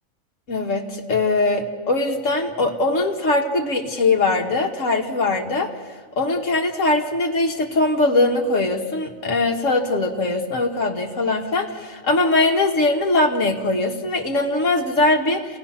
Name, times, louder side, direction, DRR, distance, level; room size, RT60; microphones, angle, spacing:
voice 1, 0.5-5.7 6.2-15.6, left 2 dB, 65° left, 2 dB, 2.0 m, -21 dB
28.5 x 18.0 x 5.9 m, 1.5 s
omnidirectional pair, 1.4 m